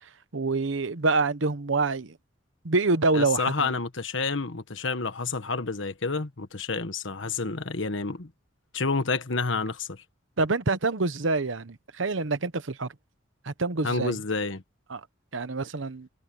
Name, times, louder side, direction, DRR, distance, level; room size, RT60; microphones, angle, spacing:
voice 1, 0.3-2.2 2.6-3.7 10.4-12.9 13.4-14.2 14.9-15.0 15.3-16.1, right 3 dB, 70° right, 1.0 m, -26 dB
voice 2, 3.1-8.3 8.7-10.0 13.8-14.6, left 4 dB, 70° left, 1.4 m, -29 dB
head